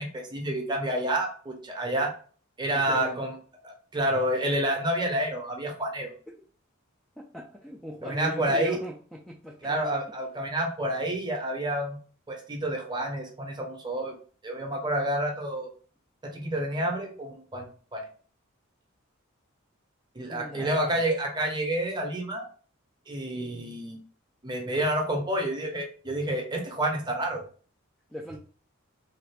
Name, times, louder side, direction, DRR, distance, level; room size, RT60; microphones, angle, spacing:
voice 1, 0.0-2.1 2.6-3.3 3.6-6.1 8.0-8.8 9.6-12.0 12.3-14.2 14.4-15.7 16.2-18.1 20.2-22.4 23.1-24.0 24.4-27.4, right 1 dB, 20° right, 2 dB, 0.7 m, -29 dB
voice 2, 2.7-3.3 7.2-9.9 20.3-21.0 28.1-28.4, equal, 5° left, -2 dB, 0.3 m, -39 dB
3.2 x 2.5 x 3.3 m, 0.41 s
head